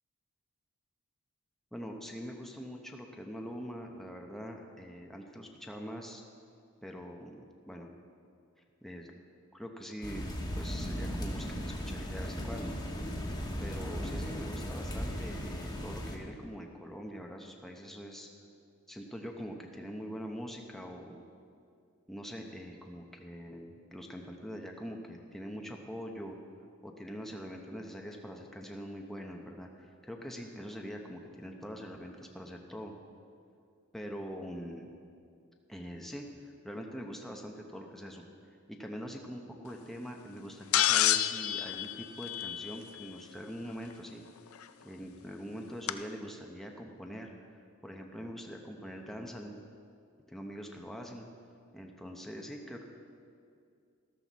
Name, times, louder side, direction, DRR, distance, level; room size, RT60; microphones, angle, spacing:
voice 1, 1.7-6.2 6.8-7.9 8.8-9.1 9.5-12.7 13.6-18.3 18.9-21.2 22.1-26.4 26.8-29.7 30.0-32.9 33.9-34.9 35.7-44.2 44.8-47.3 47.8-49.6 50.3-51.2 51.7-52.8, equal, ahead, 1 dB, 0.8 m, -43 dB
sound 1, 10.0-16.2, equal, 20° left, 1.2 m, -37 dB
sound 2, 40.7-43.0 44.6-44.7 45.9-46.0, left 12 dB, 80° left, 0.5 m, -28 dB
13.5 x 13.0 x 4.1 m, 2.4 s
head